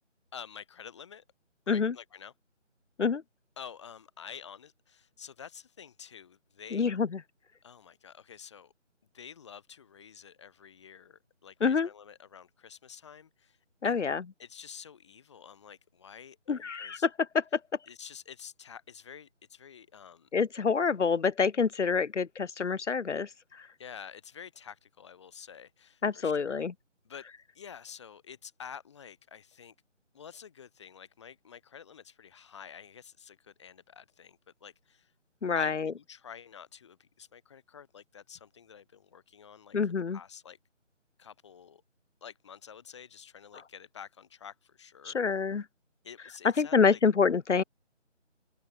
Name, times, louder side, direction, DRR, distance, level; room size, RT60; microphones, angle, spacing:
voice 1, 0.3-1.2 1.7-2.3 3.6-6.9 7.6-8.7 9.1-13.6 13.8-14.0 14.4-17.1 17.9-20.3 23.8-26.6 27.0-27.3 27.5-29.7 30.1-35.1 35.5-39.8 40.1-40.6 41.2-41.8 42.2-45.2 46.0-47.0, left 7 dB, 25° left, 3.2 m, -49 dB
voice 2, 6.7-7.2 11.6-11.9 13.8-14.2 16.5-17.1 17.3-17.6 20.3-23.7 26.0-26.7 35.4-35.9 39.7-40.2 45.0-45.6 46.6-47.6, left 5 dB, 70° left, 0.8 m, -27 dB
open air
figure-of-eight pair, 165°, 37 cm